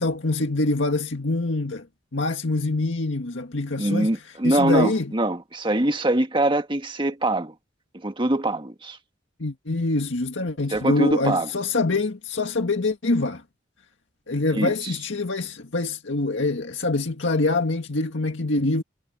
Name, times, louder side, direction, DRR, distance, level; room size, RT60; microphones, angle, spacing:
voice 1, 0.0-1.9 2.1-4.1 4.4-5.1 9.4-13.4 14.3-18.8, left 2 dB, 85° left, 1.8 m, -25 dB
voice 2, 3.8-7.5 8.0-9.0 10.7-11.5 14.5-14.9, right 1 dB, 25° right, 1.7 m, -23 dB
head